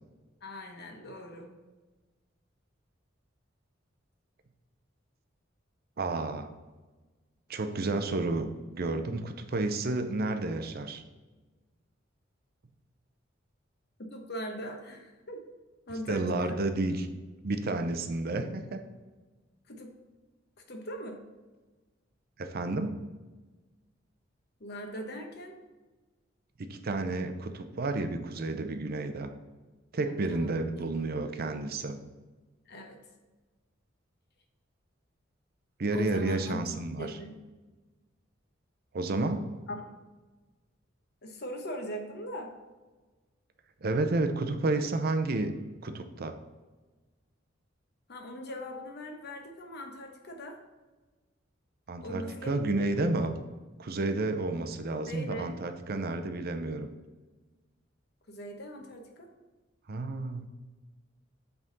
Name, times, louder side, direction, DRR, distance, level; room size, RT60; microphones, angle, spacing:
voice 1, 0.4-1.6 14.1-15.4 15.9-16.6 19.7-19.9 20.7-21.2 24.6-25.6 30.0-30.5 32.7-33.0 35.9-37.4 39.7-39.8 41.2-42.5 48.1-50.6 52.0-52.6 55.1-55.6 58.3-59.3, equal, 60° left, 4 dB, 1.0 m, -40 dB
voice 2, 6.0-6.5 7.5-11.0 16.1-17.1 17.4-18.8 22.4-23.0 26.6-29.3 29.9-32.0 35.8-37.1 38.9-39.5 43.8-45.5 45.8-46.4 51.9-53.3 53.8-56.9 59.9-60.5, right 2 dB, 55° right, 8 dB, 0.6 m, -31 dB
8.0 x 3.6 x 3.9 m, 1.3 s
head